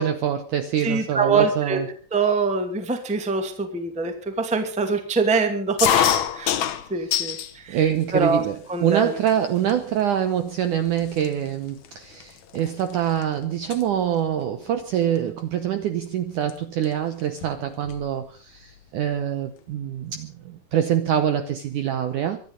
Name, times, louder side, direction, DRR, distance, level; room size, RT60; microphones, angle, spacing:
voice 1, 0.0-1.9 7.0-7.1 7.7-22.4, right 10 dB, 75° right, 9 dB, 1.9 m, -25 dB
voice 2, 0.8-1.8 2.1-6.6 6.9-7.8 8.1-8.4 8.7-9.2, right 4 dB, 5° right, 6 dB, 1.0 m, -24 dB
sound 1, 5.8-7.5 8.0-8.6 9.3-9.4 9.6-10.0 10.7-10.8 11.0-13.2 13.5-13.8 15.2-15.4 16.5-16.6 16.8-16.9 17.2-18.1, left 10 dB, 70° left, 1.8 m, -25 dB
24.0 x 10.0 x 5.2 m, 0.40 s
omnidirectional pair, 4.7 m